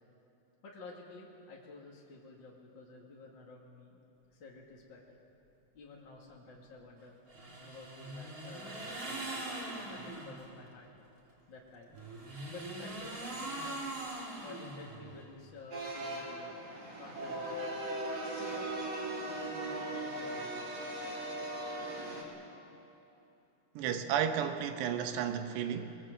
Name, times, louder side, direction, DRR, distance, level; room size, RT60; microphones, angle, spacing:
voice 1, 0.6-5.2 5.7-7.1 7.5-10.9 11.5-11.9 12.4-13.9 14.4-16.6 17.0-17.8 18.3-18.7 19.3-20.8, left 3 dB, 40° left, -3 dB, 1.9 m, -51 dB
sound 1, 7.3-10.4 11.9-15.2, right 2 dB, 25° right, 3.2 m, -42 dB
sound 2, 15.7-22.2, right 1 dB, 40° right, 4.2 m, -38 dB
voice 2, 23.8-25.9, right 8 dB, 75° right, 7 dB, 3.2 m, -33 dB
24.5 x 21.0 x 7.7 m, 2.9 s
omnidirectional pair, 5.0 m